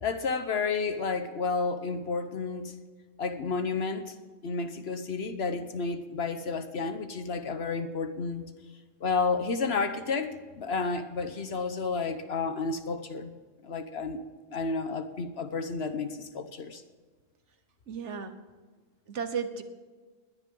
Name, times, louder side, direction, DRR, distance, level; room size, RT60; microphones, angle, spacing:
voice 1, 0.0-2.7 3.2-4.1 4.4-8.5 9.0-13.3 13.6-14.2 14.5-16.8, left 4 dB, 55° left, 9 dB, 1.2 m, -31 dB
voice 2, 17.9-18.3 19.1-19.6, right 6 dB, 65° right, 9 dB, 1.3 m, -34 dB
19.5 x 10.5 x 3.8 m, 1.4 s
omnidirectional pair, 1.3 m